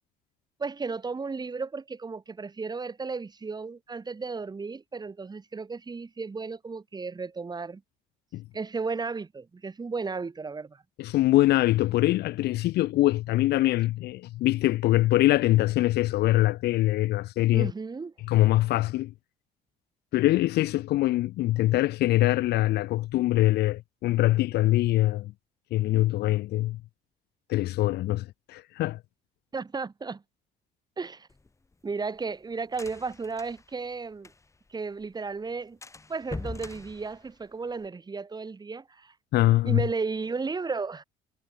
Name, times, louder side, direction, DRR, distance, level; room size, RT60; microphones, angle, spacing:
voice 1, 0.6-7.8 8.5-10.8 17.5-18.1 29.5-30.2 31.0-31.3 31.8-34.3 34.7-35.8 36.1-39.1 39.6-41.0, right 4 dB, 25° right, 4.7 m, -34 dB
voice 2, 11.0-17.7 18.2-19.1 20.1-25.3 25.7-26.8 27.5-29.0 39.3-39.9, left 16 dB, 75° left, 1.0 m, -23 dB
sound 1, 31.3-34.7 35.0-35.1 35.4-35.5 35.8-37.9, left 3 dB, 15° left, 4.4 m, -43 dB
cardioid pair, 110°, 17 cm